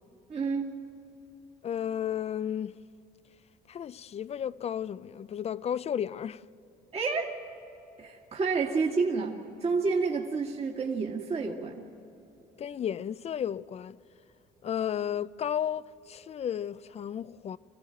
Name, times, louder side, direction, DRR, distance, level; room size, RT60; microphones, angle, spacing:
voice 1, 0.3-0.8 6.9-7.4 8.0-11.8, right 4 dB, 40° right, 2.1 m, -29 dB
voice 2, 1.6-2.8 3.7-6.4 12.6-14.0 14.6-17.6, left 9 dB, 40° left, 0.5 m, -33 dB
26.0 x 15.5 x 9.1 m
cardioid pair, 110°, 17 cm